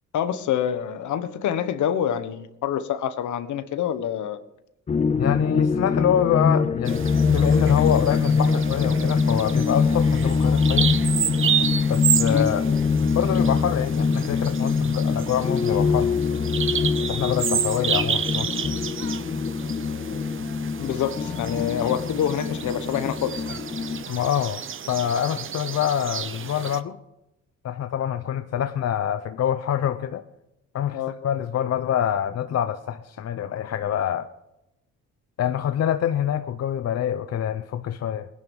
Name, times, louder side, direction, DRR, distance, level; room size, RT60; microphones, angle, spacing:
voice 1, 0.1-4.4 12.3-12.5 20.8-23.6 30.9-31.1, left 9 dB, 75° left, 1.4 m, -26 dB
sound 1, 4.9-24.0, left 5 dB, 25° left, 0.5 m, -23 dB
voice 2, 5.1-10.9 11.9-12.7 13.1-16.1 17.0-18.5 24.1-24.6 24.9-27.0 27.6-30.2 30.7-34.3 35.4-38.3, left 9 dB, 55° left, 0.8 m, -25 dB
Bird vocalization bird call bird song, 6.9-26.8, right 8 dB, 45° right, 0.9 m, -30 dB
19.5 x 11.0 x 5.5 m
cardioid pair, 90°, 30 cm